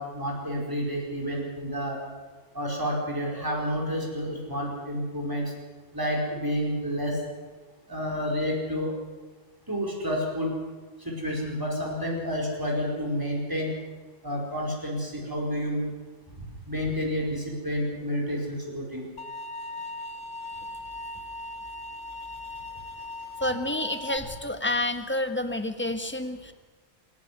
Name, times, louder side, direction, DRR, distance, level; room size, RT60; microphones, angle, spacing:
voice 1, 0.0-2.0 2.5-5.5 5.9-7.2 7.9-8.9 9.7-10.5 11.0-13.7 14.2-15.9 16.7-19.0, equal, 15° right, -1 dB, 4.9 m, -29 dB
sound 1, 19.2-24.2, left 2 dB, 90° left, 1.6 m, -39 dB
voice 2, 23.4-26.5, left 1 dB, 10° left, 7 dB, 1.3 m, -29 dB
26.5 x 11.5 x 9.6 m, 1.3 s
omnidirectional pair, 1.2 m